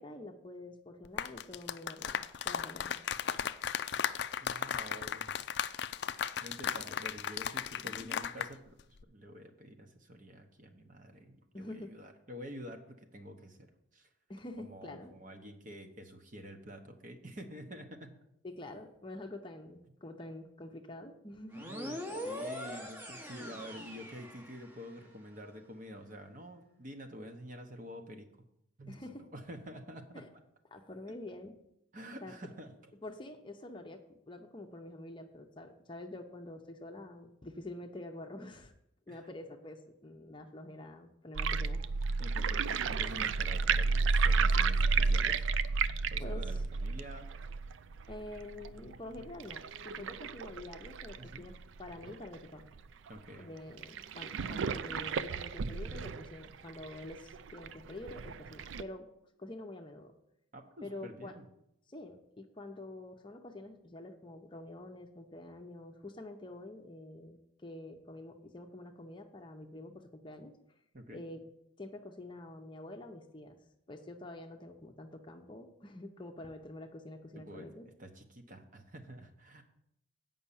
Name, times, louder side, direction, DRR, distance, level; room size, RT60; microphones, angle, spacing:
voice 1, 0.0-3.0 7.8-8.2 11.5-11.9 14.3-15.2 18.4-21.7 28.9-29.3 30.1-30.2 30.7-31.5 32.2-32.3 33.0-34.0 34.3-38.7 39.1-41.8 46.2-46.6 48.1-51.5 51.8-52.6 53.4-59.1 59.4-60.1 60.8-61.4 61.9-70.5 71.1-71.5 71.8-73.6 73.9-77.9, left 1 dB, 25° left, 4 dB, 0.7 m, -47 dB
sound 1, 1.0-8.5 8.8-9.0, left 8 dB, 60° left, 0.4 m, -36 dB
voice 2, 4.4-5.3 6.4-14.1 14.6-18.2 21.5-28.3 28.8-30.3 31.9-32.7 39.1-39.3 42.2-45.5 46.1-47.3 51.2-51.4 53.1-53.5 60.5-61.4 70.9-71.2 77.3-77.7 78.0-79.6, equal, 40° right, 5 dB, 1.0 m, -48 dB
sound 2, 21.5-25.0, equal, 10° right, 0.9 m, -42 dB
sound 3, 41.3-52.3 52.8-52.9 53.1-53.2 53.8-58.8, right 4 dB, 75° right, 0.4 m, -32 dB
8.7 x 5.5 x 7.1 m, 0.79 s
head